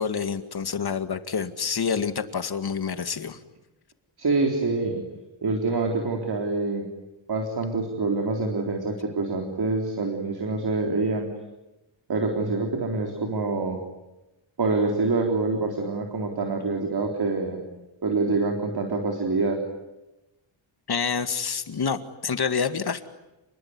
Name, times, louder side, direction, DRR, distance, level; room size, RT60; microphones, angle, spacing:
voice 1, 0.0-3.4 20.9-23.1, left 6 dB, 50° left, 9 dB, 2.1 m, -27 dB
voice 2, 4.2-5.0 5.4-6.9 7.3-11.3 12.1-13.8 14.6-17.6 18.0-19.6, right 3 dB, 50° right, 3 dB, 4.0 m, -26 dB
29.0 x 21.0 x 9.7 m, 1.0 s
wide cardioid pair, 110°, 49 cm